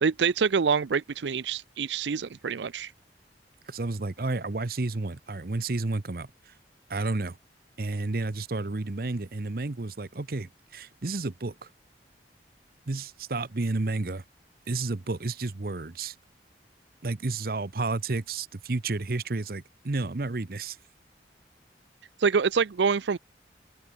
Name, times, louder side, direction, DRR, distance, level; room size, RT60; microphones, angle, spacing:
voice 1, 0.0-2.9 22.2-23.2, right 5 dB, 85° right, 0.5 m, -26 dB
voice 2, 3.7-6.5 6.9-7.4 7.8-11.7 12.9-14.2 14.7-16.1 17.0-20.8, right 3 dB, 55° right, 0.8 m, -31 dB
open air
head